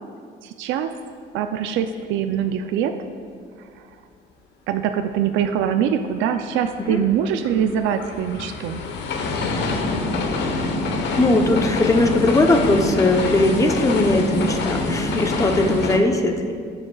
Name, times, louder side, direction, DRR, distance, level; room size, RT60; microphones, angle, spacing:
voice 1, 0.4-0.9 1.3-2.9 3.6-3.9 4.7-8.8, right 8 dB, 80° right, 7 dB, 0.5 m, -23 dB
sound 1, 6.7-16.0, left 2 dB, 65° left, 1.0 m, -25 dB
voice 2, 11.2-16.5, left 2 dB, 15° left, 4 dB, 0.7 m, -19 dB
14.5 x 7.1 x 2.3 m, 2.1 s
cardioid pair, 115°, 19 cm